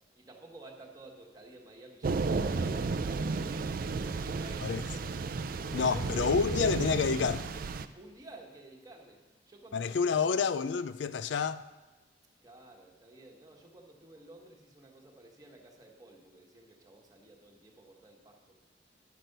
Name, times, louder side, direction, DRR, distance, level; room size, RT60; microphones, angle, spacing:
voice 1, 0.1-6.4 7.8-10.2 12.4-18.6, right 2 dB, 20° right, 1.4 m, -53 dB
Thunder / Rain, 2.0-7.9, right 4 dB, 50° right, 0.4 m, -33 dB
voice 2, 5.7-7.4 9.7-11.6, left 5 dB, 75° left, 0.4 m, -28 dB
11.0 x 6.0 x 6.6 m
head